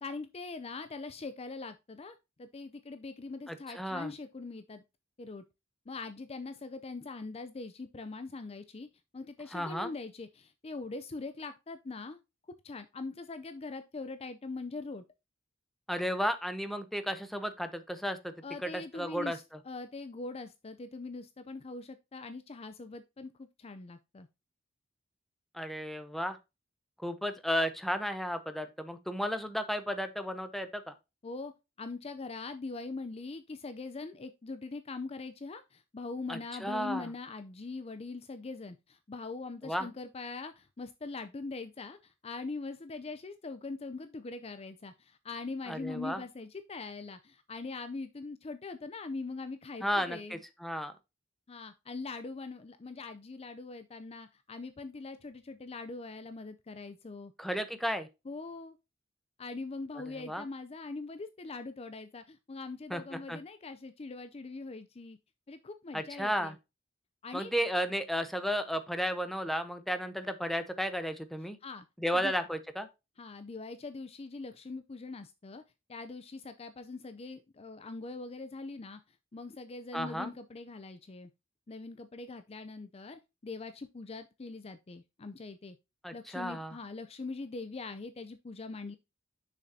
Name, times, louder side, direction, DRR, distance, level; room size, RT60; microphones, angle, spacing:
voice 1, 0.0-4.8 5.2-5.4 5.9-8.9 9.1-12.2 12.6-15.0 18.4-24.3 31.2-31.5 31.8-50.4 51.5-57.3 58.3-58.8 59.4-65.2 65.5-66.6 67.2-67.5 71.6-71.9 72.1-72.3 73.2-75.6 75.9-79.0 79.3-81.3 81.7-85.8 86.1-89.0, left 3 dB, 30° left, 0.5 m, -42 dB
voice 2, 3.5-4.1 9.5-9.9 15.9-18.3 18.6-19.4 25.5-26.4 27.0-30.9 36.3-37.1 39.6-39.9 45.7-46.2 49.8-50.9 57.4-58.1 59.9-60.4 62.9-63.4 65.9-66.6 67.3-71.6 72.0-72.9 79.9-80.3 86.0-86.8, equal, ahead, 0.8 m, -33 dB
6.6 x 6.3 x 2.7 m
head